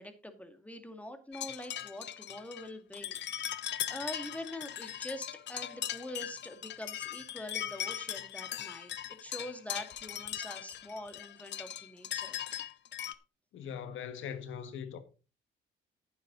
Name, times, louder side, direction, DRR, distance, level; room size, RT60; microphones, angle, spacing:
voice 1, 0.0-3.6 3.9-12.4, left 1 dB, 5° left, 2.2 m, -44 dB
sound 1, 1.3-13.1, left 11 dB, 65° left, 0.8 m, -39 dB
voice 2, 13.5-15.0, left 8 dB, 80° left, 1.7 m, -40 dB
11.0 x 9.4 x 4.0 m
cardioid pair, 90°, 20 cm